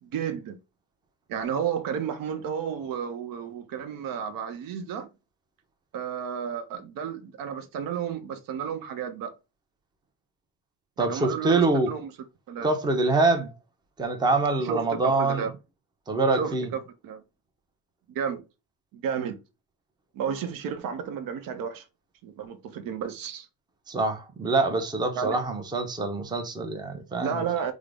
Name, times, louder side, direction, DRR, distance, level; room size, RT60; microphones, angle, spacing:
voice 1, 0.0-0.6 1.3-5.1 5.9-9.3 11.0-12.1 12.5-12.7 14.6-15.5 16.4-17.2 18.1-18.4 18.9-19.4 20.1-21.8 22.2-23.5 25.1-25.4 27.2-27.7, right 7 dB, 70° right, 0.7 m, -32 dB
voice 2, 11.0-11.9 12.6-13.5 14.0-15.5 16.1-16.7 23.9-27.4, right 3 dB, 10° right, 0.5 m, -25 dB
3.6 x 2.0 x 3.3 m
cardioid pair, 130°, 36 cm